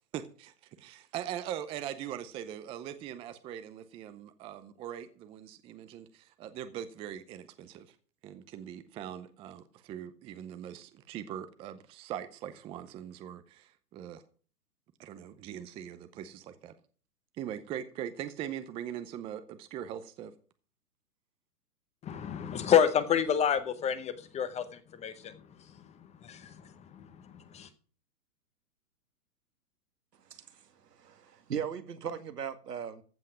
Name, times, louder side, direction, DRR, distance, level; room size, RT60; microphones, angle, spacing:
voice 1, 0.1-7.9 8.2-14.2 15.0-16.7 17.4-20.3, right 10 dB, 10° right, 0.5 m, -41 dB
voice 2, 22.0-24.6 24.9-25.3 26.2-26.6 27.0-27.7, left 8 dB, 15° left, 0.9 m, -28 dB
voice 3, 30.2-33.0, right 8 dB, 80° right, 2.0 m, -39 dB
15.0 x 5.6 x 7.5 m
hypercardioid pair, 130°, 47 cm